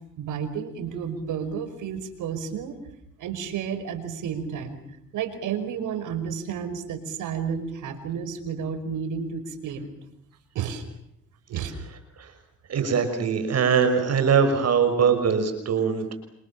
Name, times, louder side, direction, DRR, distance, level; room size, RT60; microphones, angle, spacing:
voice 1, 0.2-2.8 3.2-4.8 5.1-9.9 10.6-10.8 11.5-11.7, right 7 dB, 85° right, 8 dB, 5.4 m, -31 dB
voice 2, 11.6-12.3 12.7-16.1, right 6 dB, 55° right, 8 dB, 5.9 m, -22 dB
27.5 x 27.5 x 7.5 m, 0.75 s
cardioid pair, 90°, 30 cm